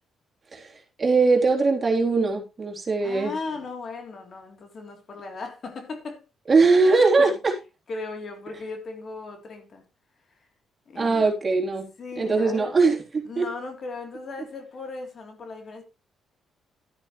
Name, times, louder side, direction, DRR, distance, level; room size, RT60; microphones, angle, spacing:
voice 1, 0.5-3.3 6.5-7.5 11.0-11.9 12.2-13.5, right 4 dB, 30° right, 3.7 m, -21 dB
voice 2, 3.0-6.2 6.7-7.4 7.9-9.8 10.9-11.3 12.0-12.7 13.3-15.8, left 3 dB, 50° left, 3.4 m, -37 dB
12.5 x 10.5 x 3.2 m
cardioid pair, 90°, 0 cm